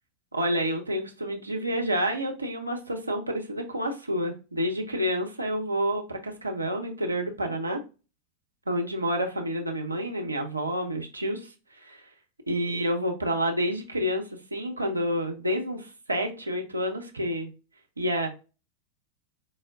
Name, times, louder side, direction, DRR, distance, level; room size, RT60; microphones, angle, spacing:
voice 1, 0.3-7.8 8.7-12.1 12.5-17.5 18.0-18.3, equal, 80° right, 2 dB, 0.8 m, -29 dB
4.7 x 2.1 x 3.5 m, 0.31 s
figure-of-eight pair, 90°, 0 cm